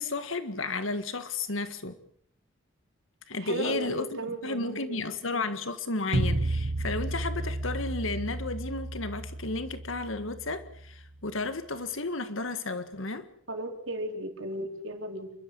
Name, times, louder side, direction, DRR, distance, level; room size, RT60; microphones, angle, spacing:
voice 1, 0.0-2.0 3.3-13.3, left 3 dB, 85° left, 1.8 m, -33 dB
voice 2, 3.3-5.0 13.5-15.3, right 1 dB, 75° right, 4.4 m, -35 dB
sound 1, 6.1-11.2, right 2 dB, 55° right, 1.2 m, -32 dB
29.0 x 12.5 x 9.6 m
head